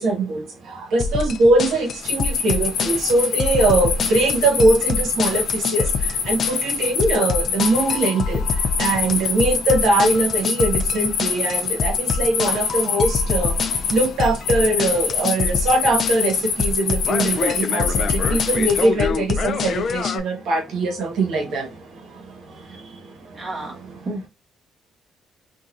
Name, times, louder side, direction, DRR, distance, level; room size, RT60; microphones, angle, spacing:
voice 1, 0.0-13.6 13.9-23.5, right 2 dB, 80° right, 1.2 m, -22 dB
sound 1, 1.0-20.2, left 5 dB, 50° left, 0.4 m, -26 dB
sound 2, 2.0-18.8, left 6 dB, 85° left, 1.0 m, -25 dB
voice 2, 23.3-24.3, right 2 dB, 35° right, 1.1 m, -32 dB
3.9 x 2.4 x 2.4 m
cardioid pair, 120°, 0 cm